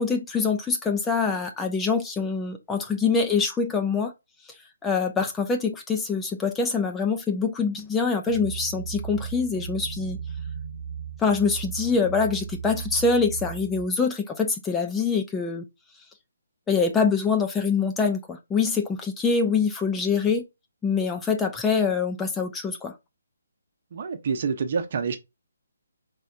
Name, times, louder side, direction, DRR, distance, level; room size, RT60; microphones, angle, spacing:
voice 1, 0.0-4.1 4.8-10.2 11.2-15.6 16.7-20.4 20.8-22.9, left 5 dB, 10° left, 0.6 m, -24 dB
sound 1, 8.3-13.8, right 6 dB, 75° left, 1.2 m, -36 dB
voice 2, 23.9-25.2, right 5 dB, 45° right, 0.9 m, -27 dB
5.3 x 3.7 x 2.6 m
figure-of-eight pair, 140°, 0 cm